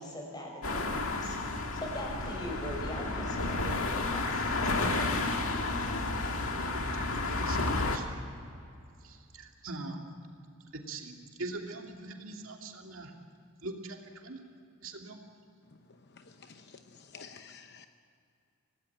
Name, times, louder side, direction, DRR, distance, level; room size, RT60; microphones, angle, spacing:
voice 1, 0.0-4.7, equal, 20° left, 0 dB, 5.9 m, -41 dB
sound 1, 0.6-8.0, left 2 dB, 65° left, 2.1 m, -31 dB
voice 2, 6.4-8.1 9.0-10.1 10.7-13.1 13.6-14.4 14.8-15.2, right 2 dB, 60° right, 1 dB, 2.6 m, -42 dB
voice 3, 16.1-17.9, left 5 dB, 50° left, 7 dB, 0.9 m, -51 dB
26.5 x 18.0 x 8.7 m, 2.5 s
head